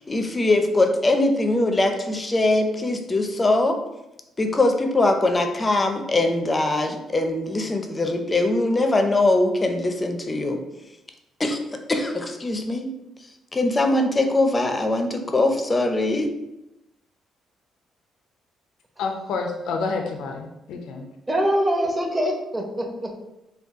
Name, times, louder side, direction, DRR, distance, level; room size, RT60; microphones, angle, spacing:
voice 1, 0.0-3.8 4.4-10.6 11.4-11.6 11.9-12.9 13.5-16.3, left 2 dB, 25° left, 5 dB, 0.5 m, -22 dB
voice 2, 19.0-21.1, left 4 dB, 85° left, 3 dB, 0.4 m, -29 dB
voice 3, 21.3-23.2, equal, 20° right, 2 dB, 0.7 m, -24 dB
3.9 x 2.3 x 3.5 m, 0.91 s
cardioid pair, 90°, 0 cm